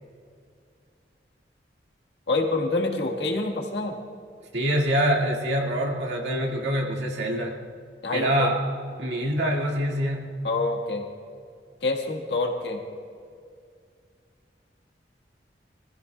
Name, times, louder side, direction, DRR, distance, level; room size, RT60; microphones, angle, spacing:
voice 1, 2.3-4.0 8.0-8.5 10.4-11.0 11.8-12.8, left 2 dB, 85° left, 2 dB, 1.6 m, -26 dB
voice 2, 4.5-7.5 8.1-8.6 9.0-10.3, equal, 85° right, -1 dB, 2.0 m, -25 dB
23.0 x 15.0 x 2.3 m, 2.2 s
head